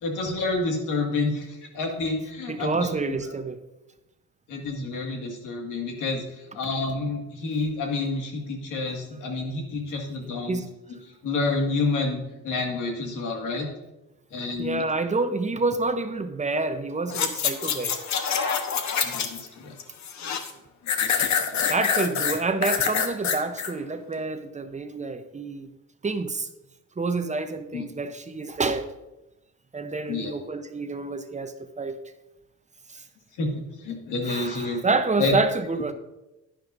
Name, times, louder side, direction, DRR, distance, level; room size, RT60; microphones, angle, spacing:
voice 1, 0.0-2.9 4.5-10.6 10.9-11.0 11.2-13.7 14.3-14.9 19.0-19.8 20.8-21.6 27.7-27.8 30.1-30.3 33.4-34.8 35.2-35.3, left 3 dB, 85° left, 2.0 m, -29 dB
voice 2, 2.5-3.6 10.5-10.7 14.6-18.0 20.2-20.4 21.7-25.7 26.0-26.5 27.0-28.9 29.7-32.0 32.9-33.0 34.2-35.9, right 3 dB, 25° right, 0.8 m, -28 dB
sound 1, 17.1-19.5 19.8-20.5 20.9-23.7 24.2-24.3, left 7 dB, 65° left, 1.1 m, -26 dB
10.5 x 10.0 x 2.6 m
cardioid pair, 90°, 30 cm